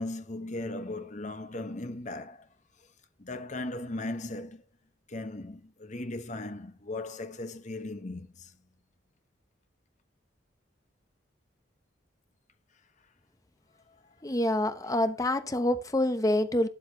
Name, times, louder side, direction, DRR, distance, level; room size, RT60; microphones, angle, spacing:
voice 1, 0.0-2.5 3.2-4.6 5.1-8.5 13.9-14.0, left 2 dB, 40° left, 1.0 m, -37 dB
voice 2, 14.2-16.7, left 1 dB, 20° left, 0.9 m, -26 dB
12.5 x 8.8 x 2.9 m
head